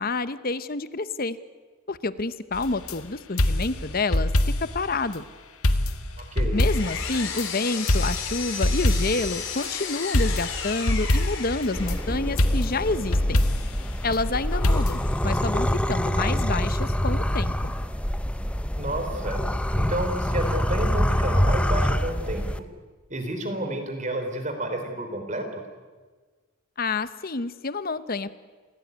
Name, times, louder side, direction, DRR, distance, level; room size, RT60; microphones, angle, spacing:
voice 1, 0.0-1.4 1.9-4.3 4.6-5.2 6.5-13.4 14.0-17.7 26.8-28.3, left 3 dB, 45° left, 14 dB, 0.8 m, -28 dB
sound 1, 2.5-3.0 3.4-4.8 5.1-5.2 5.6-7.5 7.9-9.3 10.1-12.0 12.4-13.8 14.6-15.2, left 1 dB, 80° left, 1.7 m, -24 dB
Power tool, 6.2-12.3, left 6 dB, 65° left, 4.3 m, -34 dB
voice 2, 6.2-6.6 18.8-19.4 19.7-22.7 23.1-25.6, right 1 dB, 35° right, 6 dB, 3.7 m, -30 dB
sound 2, 11.8-22.6, equal, 5° left, 0.7 m, -26 dB
28.0 x 17.5 x 9.4 m, 1.4 s
head